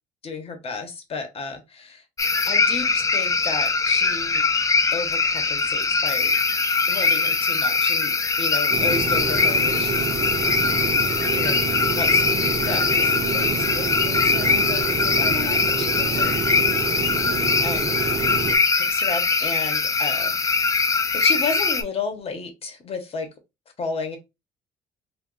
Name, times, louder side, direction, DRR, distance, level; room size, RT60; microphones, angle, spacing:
voice 1, 0.2-2.0 2.5-4.4 4.9-6.3 6.9-10.7 11.3-16.3 17.2-18.0 18.8-20.8 21.1-23.3 23.8-24.2, left 4 dB, 35° left, 0.9 m, -33 dB
sound 1, 2.2-21.8, left 4 dB, 20° left, 0.4 m, -22 dB
sound 2, 8.7-18.6, right 5 dB, 35° right, 0.6 m, -28 dB
2.3 x 2.3 x 3.7 m
cardioid pair, 110°, 17 cm